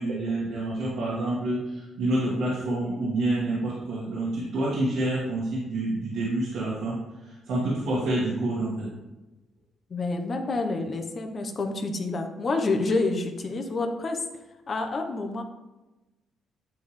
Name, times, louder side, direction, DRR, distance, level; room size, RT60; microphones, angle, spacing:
voice 1, 0.0-7.0 7.2-8.9, right 1 dB, 80° right, -8 dB, 1.8 m, -28 dB
voice 2, 9.9-14.2 14.7-15.4, left 3 dB, 40° left, 4 dB, 0.9 m, -28 dB
9.2 x 3.6 x 3.2 m, 1.1 s
cardioid pair, 90°, 0 cm